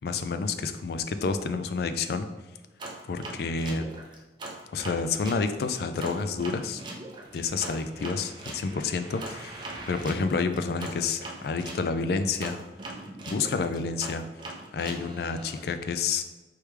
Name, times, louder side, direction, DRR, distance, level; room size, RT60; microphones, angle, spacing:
voice 1, 0.0-2.3 3.1-3.9 4.7-6.8 7.3-12.6 13.3-14.2 14.7-16.2, left 4 dB, 60° left, 9 dB, 0.3 m, -29 dB
sound 1, 2.8-5.4 6.0-11.8 12.4-15.6, right 2 dB, 25° right, 0.5 m, -41 dB
4.7 x 3.2 x 3.2 m, 1.2 s
head